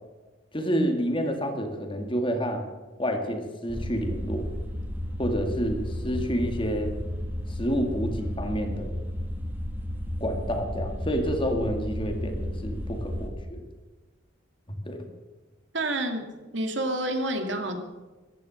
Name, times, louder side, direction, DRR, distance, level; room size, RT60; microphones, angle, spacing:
voice 1, 0.5-2.7 3.0-4.5 5.2-7.0 7.5-9.0 10.2-13.6 14.7-15.1, equal, 30° left, 5 dB, 2.3 m, -29 dB
sound 1, 3.7-13.3, left 1 dB, 10° right, 2.2 m, -33 dB
voice 2, 15.7-16.3 16.5-17.8, right 1 dB, 70° right, 5 dB, 2.5 m, -28 dB
15.0 x 12.5 x 6.5 m, 1.2 s
head